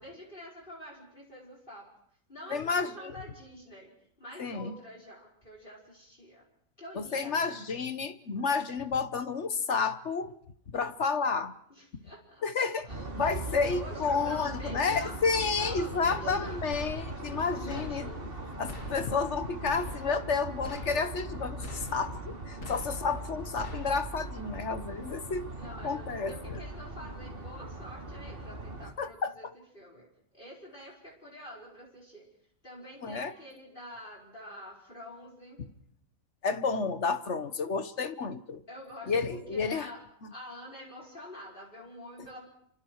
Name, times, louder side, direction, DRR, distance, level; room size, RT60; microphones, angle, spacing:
voice 1, 0.0-1.9 2.3-3.9 4.2-6.5 6.8-7.6 11.7-15.2 15.6-16.7 17.4-18.2 25.6-32.3 32.6-35.6 38.7-40.0 40.3-42.5, equal, 35° left, -2 dB, 5.5 m, -47 dB
voice 2, 2.5-3.1 4.4-4.7 7.0-10.3 10.7-11.6 12.4-12.9 13.2-18.1 18.6-25.5 25.8-26.6 29.0-29.3 33.0-33.3 36.4-38.6 39.1-39.9 40.2-40.3, left 5 dB, 50° left, 11 dB, 1.4 m, -31 dB
sound 1, 12.9-28.9, right 2 dB, 35° right, 2.8 m, -40 dB
sound 2, 16.7-17.4 17.7-18.4 18.7-19.4 19.7-20.3 20.6-21.3 21.6-22.3 22.6-23.3 23.6-24.3, left 2 dB, 80° left, 3.7 m, -45 dB
28.5 x 25.5 x 4.7 m, 0.69 s
omnidirectional pair, 1.6 m